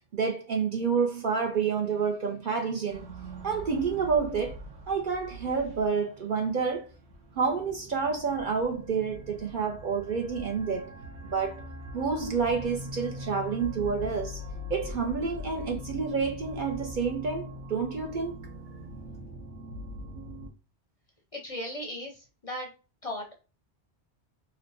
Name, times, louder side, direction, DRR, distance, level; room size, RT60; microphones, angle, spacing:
voice 1, 0.1-3.1 3.4-4.6 4.9-6.9 7.4-10.9 11.2-11.6 11.9-14.4 14.7-18.4, right 5 dB, 60° right, 0.6 m, -29 dB
sound 1, 2.9-20.5, left 1 dB, 80° right, 1.1 m, -42 dB
voice 2, 21.3-22.7 23.0-23.4, left 1 dB, 40° left, 0.6 m, -37 dB
3.1 x 2.0 x 3.9 m
omnidirectional pair, 1.1 m